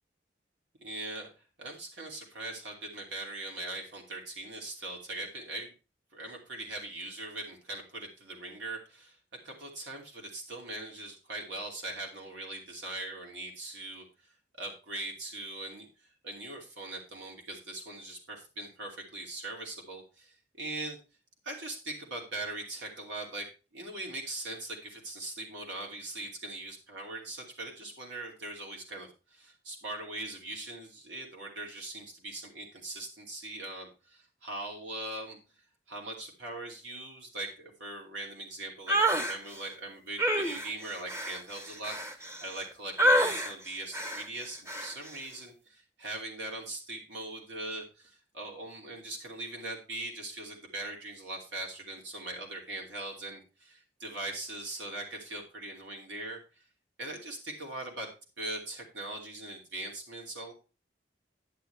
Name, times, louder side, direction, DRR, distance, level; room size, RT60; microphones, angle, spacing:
voice 1, 0.8-1.3 1.6-5.7 6.1-9.2 9.4-14.0 14.6-15.9 16.2-21.0 21.4-35.4 35.9-56.4 57.0-58.1 58.4-60.5, right 2 dB, 90° right, 0 dB, 2.8 m, -41 dB
sound 1, 38.9-39.4 40.2-42.6 43.0-43.5 43.9-44.3 44.7-44.9, equal, 15° right, 0.8 m, -27 dB
10.5 x 8.9 x 3.4 m, 0.32 s
head